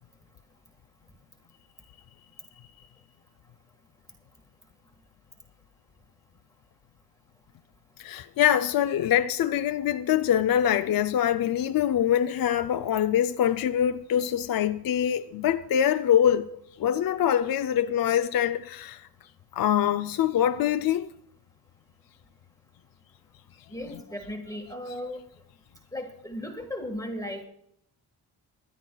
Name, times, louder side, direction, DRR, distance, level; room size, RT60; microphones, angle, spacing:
voice 1, 8.0-16.5 16.8-19.1 19.5-21.1, left 10 dB, 55° left, 0.5 m, -24 dB
voice 2, 23.7-25.2 25.9-27.4, left 1 dB, 10° left, 1.6 m, -36 dB
23.5 x 11.0 x 2.3 m
cardioid pair, 95°, 41 cm